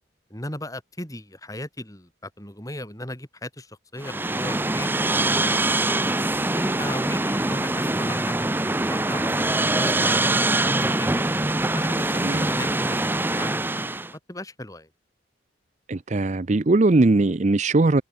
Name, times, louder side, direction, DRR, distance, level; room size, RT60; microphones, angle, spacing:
voice 1, 0.3-5.9 6.5-11.1 11.7-13.6 14.3-14.9, left 1 dB, 15° left, 6.3 m, -37 dB
sound 1, 4.0-14.1, right 2 dB, 10° right, 0.8 m, -23 dB
voice 2, 15.9-18.0, right 2 dB, 35° right, 0.5 m, -20 dB
head